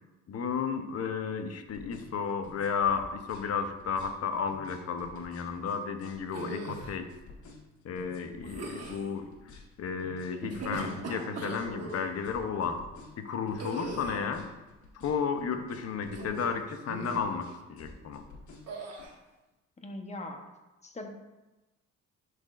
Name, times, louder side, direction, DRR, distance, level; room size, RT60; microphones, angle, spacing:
voice 1, 0.3-7.1 7.8-9.3 9.8-12.9 13.2-14.5 14.9-18.2, left 6 dB, 55° left, 7 dB, 0.8 m, -33 dB
sound 1, 1.6-19.0, left 3 dB, 70° left, 1.3 m, -51 dB
sound 2, 6.3-7.0 8.4-9.1 10.3-12.1 13.6-14.3 16.0-16.6 16.9-17.3 18.7-19.1, right 2 dB, 55° right, 1.3 m, -39 dB
voice 2, 19.8-20.5 20.8-21.1, left 1 dB, 25° left, 4 dB, 0.9 m, -40 dB
10.5 x 4.0 x 2.5 m, 1.1 s
cardioid pair, 90°, 30 cm